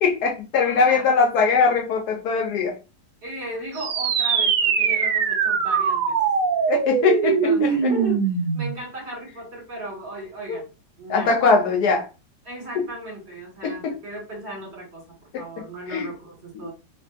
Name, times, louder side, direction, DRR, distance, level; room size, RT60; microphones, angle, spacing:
voice 1, 0.0-2.8 6.7-7.9 10.5-10.6 11.1-12.1 12.8-12.9 13.6-14.0 15.3-15.4 15.9-16.1 16.6-16.7, left 5 dB, 70° left, 2 dB, 1.0 m, -21 dB
voice 2, 0.6-1.0 3.2-6.2 7.2-8.3 8.5-10.6 11.0-11.3 12.5-15.0 15.4-16.7, right 1 dB, 40° right, -2 dB, 1.7 m, -36 dB
sound 1, 3.7-8.8, right 6 dB, 70° right, 0.8 m, -22 dB
3.4 x 2.6 x 2.3 m, 0.29 s
omnidirectional pair, 1.9 m